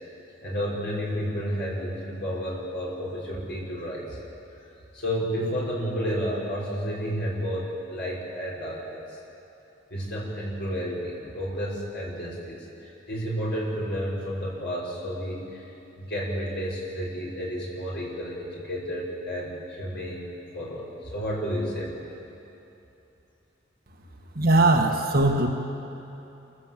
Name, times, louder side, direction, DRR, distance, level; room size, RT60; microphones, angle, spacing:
voice 1, 0.4-4.2 4.9-9.2 9.9-20.3 20.5-22.1, equal, 60° left, -4 dB, 5.8 m, -31 dB
voice 2, 24.4-25.5, right 2 dB, 50° right, 2 dB, 1.9 m, -20 dB
27.5 x 15.0 x 7.7 m, 2.9 s
head